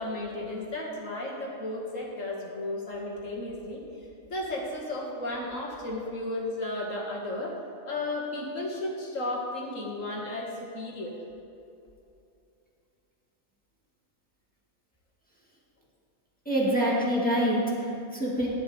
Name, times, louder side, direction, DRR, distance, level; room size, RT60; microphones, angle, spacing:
voice 1, 0.0-3.8 4.2-7.6 7.9-11.2, left 2 dB, 65° left, -2 dB, 2.4 m, -34 dB
voice 2, 16.5-18.5, equal, 5° left, -5 dB, 2.2 m, -26 dB
16.0 x 11.0 x 3.5 m, 2.7 s
omnidirectional pair, 1.5 m